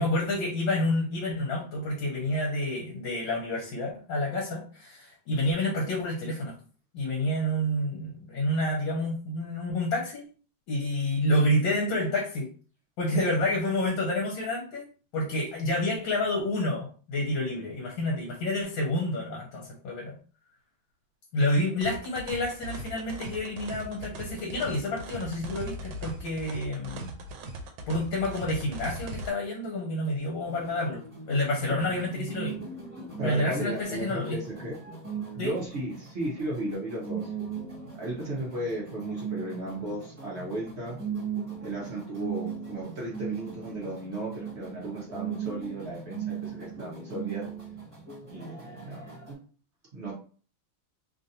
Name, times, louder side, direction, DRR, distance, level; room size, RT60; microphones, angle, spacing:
voice 1, 0.0-6.5 6.9-10.2 10.7-12.5 13.0-14.8 15.1-20.1 21.3-27.1 27.9-31.0 31.3-32.6 33.2-34.4 35.4-35.5, left 1 dB, 70° left, -3 dB, 1.4 m, -29 dB
sound 1, 21.8-29.3, right 1 dB, 80° right, 1.3 m, -39 dB
sound 2, 30.4-49.3, right 7 dB, 20° right, 1.2 m, -38 dB
voice 2, 33.2-34.8 35.3-37.3 38.0-41.0 41.6-47.5 48.3-49.1 49.9-50.1, right 1 dB, 55° right, -4 dB, 0.7 m, -35 dB
3.3 x 2.5 x 2.7 m, 0.40 s
omnidirectional pair, 2.2 m